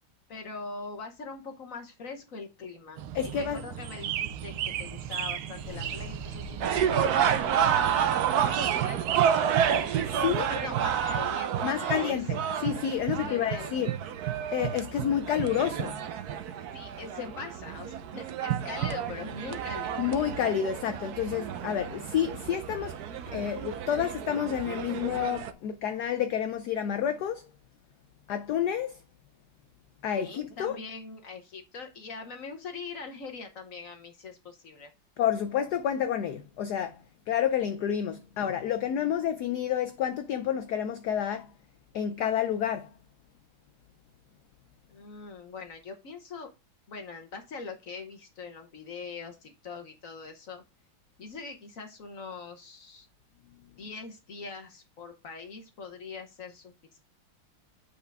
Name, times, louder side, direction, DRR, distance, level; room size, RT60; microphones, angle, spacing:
voice 1, 0.3-9.0 10.3-12.2 13.1-13.7 16.7-20.1 30.2-34.9 44.9-46.5 46.9-50.6 51.2-53.1 53.8-57.0, left 4 dB, 55° left, 1.0 m, -42 dB
sound 1, 3.0-11.3, right 10 dB, 85° right, 1.6 m, -36 dB
voice 2, 3.1-3.6 10.1-10.5 11.6-13.9 14.5-16.0 20.0-23.0 23.3-27.5 28.3-29.0 30.0-30.8 35.2-41.5 41.9-42.9, left 9 dB, 80° left, 0.9 m, -29 dB
sound 2, 5.6-9.8, equal, 20° left, 1.4 m, -48 dB
sound 3, 6.6-25.5, right 9 dB, 70° right, 0.9 m, -30 dB
7.9 x 5.0 x 3.4 m
omnidirectional pair, 2.4 m